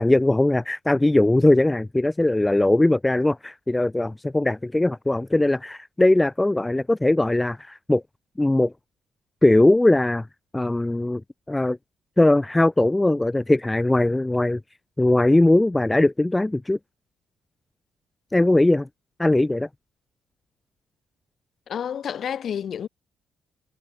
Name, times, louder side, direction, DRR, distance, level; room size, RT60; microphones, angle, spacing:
voice 1, 0.0-8.0 8.4-8.7 9.4-10.3 10.5-11.2 11.5-11.8 12.2-14.6 15.0-16.8 18.3-18.9 19.2-19.7, left 2 dB, 10° left, 1.3 m, -20 dB
voice 2, 21.7-22.9, left 8 dB, 60° left, 6.4 m, -29 dB
cardioid pair, 90°, 0 cm